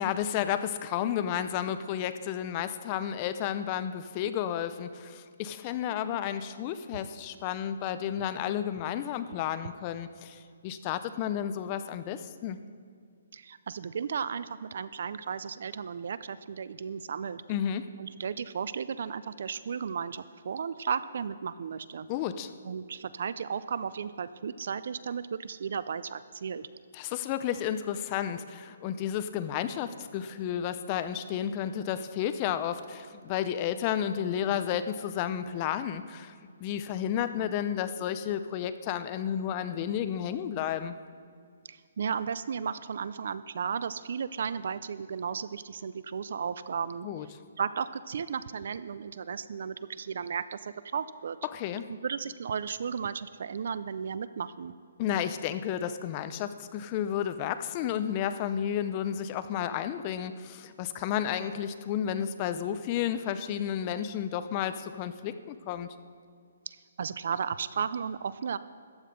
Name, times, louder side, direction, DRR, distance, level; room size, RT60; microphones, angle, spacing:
voice 1, 0.0-12.6 17.5-17.9 22.1-22.5 26.9-36.3 36.6-41.0 47.0-47.3 51.5-51.9 55.0-65.9, left 10 dB, 20° left, 11 dB, 0.4 m, -32 dB
voice 2, 13.3-17.4 18.0-22.1 22.6-26.7 41.7-47.1 47.6-51.4 51.9-54.7 66.7-68.6, right 6 dB, 55° right, 15 dB, 0.4 m, -34 dB
14.0 x 9.8 x 5.2 m, 2.2 s
hypercardioid pair, 175°, 0 cm